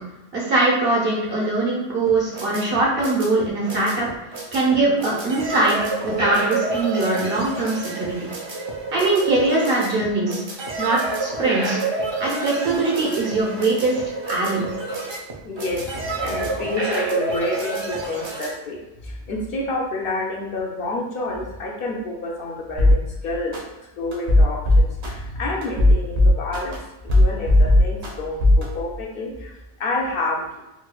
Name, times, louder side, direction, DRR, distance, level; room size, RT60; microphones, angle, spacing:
voice 1, 0.3-4.1 4.5-5.8 6.0-8.1 8.9-10.4 10.8-11.8 12.2-14.0 14.3-14.6, right 2 dB, 60° right, -4 dB, 1.1 m, -21 dB
sound 1, 2.1-18.5, right 3 dB, 45° right, 0.3 m, -29 dB
voice 2, 15.4-30.6, left 2 dB, 65° left, -1 dB, 0.7 m, -29 dB
sound 2, 22.8-23.0 23.5-23.6 24.1-25.1 25.6-26.8 27.1-28.1 28.4-28.6, left 1 dB, 80° right, 1.0 m, -14 dB
4.1 x 2.2 x 2.3 m, 0.95 s
omnidirectional pair, 1.1 m